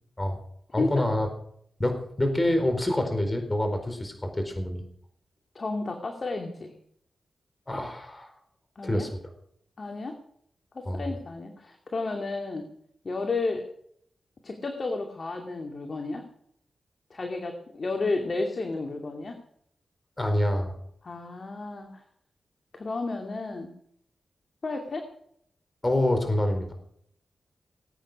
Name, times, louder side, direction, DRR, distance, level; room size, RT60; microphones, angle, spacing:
voice 1, 0.7-1.3 1.8-4.8 7.7-8.3 8.8-9.2 10.8-11.1 20.2-20.8 25.8-26.7, left 1 dB, 20° left, 6 dB, 4.3 m, -26 dB
voice 2, 5.5-6.7 8.8-9.1 9.8-10.2 10.7-12.7 13.0-13.6 14.4-16.2 17.1-19.4 21.0-22.0 22.7-23.7 24.6-25.1, left 3 dB, 50° left, 3 dB, 2.5 m, -32 dB
20.5 x 9.0 x 6.2 m, 0.68 s
cardioid pair, 55°, 0 cm